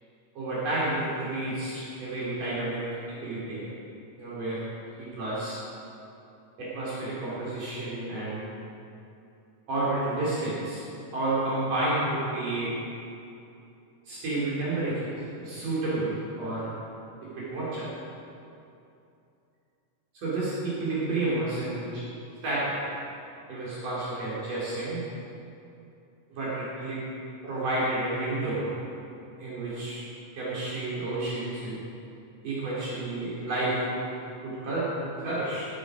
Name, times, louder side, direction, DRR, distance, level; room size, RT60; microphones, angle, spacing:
voice 1, 0.3-2.8 3.1-3.6 4.2-4.6 5.0-5.6 6.6-8.4 9.7-10.8 11.1-12.7 14.1-15.1 15.4-16.7 17.2-17.9 20.1-22.0 22.4-22.8 23.5-25.0 26.3-27.0 27.4-28.7 29.4-30.0 30.3-31.8 32.4-34.0 34.4-35.7, right 2 dB, 70° right, -9 dB, 5.1 m, -30 dB
18.0 x 12.0 x 5.1 m, 2.7 s
omnidirectional pair, 3.8 m